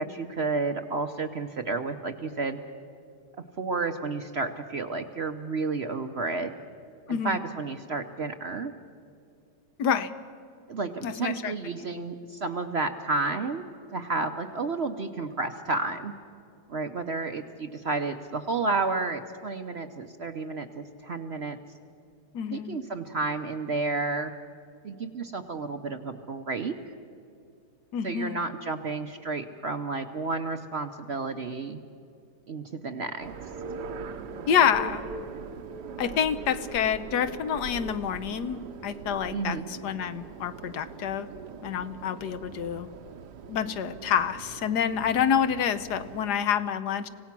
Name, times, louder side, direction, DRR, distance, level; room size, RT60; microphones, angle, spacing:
voice 1, 0.0-2.6 3.6-6.5 7.1-8.7 10.7-13.6 13.9-16.1 16.7-21.6 22.5-24.3 24.8-26.8 28.0-31.8 32.5-33.3 39.3-39.7, right 3 dB, 50° right, 7 dB, 0.8 m, -31 dB
voice 2, 7.1-7.4 9.8-10.1 11.0-11.5 22.3-22.8 27.9-28.4 34.5-35.0 36.0-41.3 41.6-42.9 43.5-47.1, left 8 dB, 70° left, 12 dB, 1.4 m, -27 dB
sound 1, 33.2-46.3, right 5 dB, 75° right, 1.5 m, -41 dB
25.5 x 17.5 x 6.0 m, 2.5 s
omnidirectional pair, 1.9 m